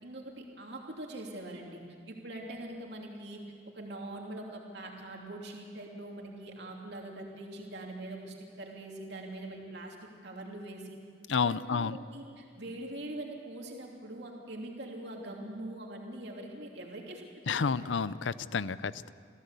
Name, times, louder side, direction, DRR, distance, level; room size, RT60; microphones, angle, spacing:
voice 1, 0.0-3.4 3.7-11.0 11.4-17.9, right 1 dB, 65° right, 0 dB, 2.9 m, -43 dB
voice 2, 11.3-12.0 17.5-19.1, left 5 dB, 85° left, 17 dB, 0.6 m, -30 dB
26.5 x 15.5 x 8.3 m, 2.2 s
head